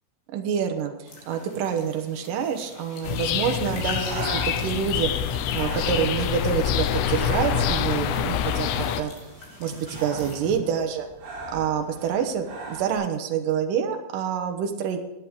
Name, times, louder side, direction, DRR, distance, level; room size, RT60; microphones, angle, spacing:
voice 1, 0.3-5.1 5.5-9.3 9.6-11.1 11.5-15.0, right 7 dB, 80° right, 5 dB, 1.9 m, -27 dB
sound 1, 1.1-10.6, left 3 dB, 70° left, 5.2 m, -45 dB
sound 2, 3.0-9.0, left 9 dB, 90° left, 2.2 m, -26 dB
Breathing, 3.6-13.0, right 2 dB, 55° right, 6.1 m, -40 dB
18.0 x 8.6 x 3.7 m, 1.1 s
omnidirectional pair, 5.3 m